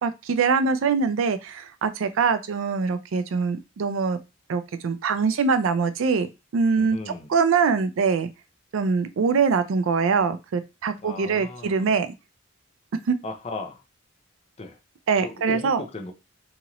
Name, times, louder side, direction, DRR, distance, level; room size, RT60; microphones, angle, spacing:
voice 1, 0.0-4.2 4.5-6.3 6.5-7.0 7.3-8.3 8.7-12.1 13.1-13.2 15.1-15.8, right 5 dB, 65° right, 11 dB, 0.4 m, -23 dB
voice 2, 6.8-7.3 11.0-11.9 13.2-13.8 14.6-14.8 15.2-16.1, left 2 dB, 30° left, 4 dB, 0.5 m, -36 dB
2.9 x 2.5 x 2.9 m, 0.26 s
head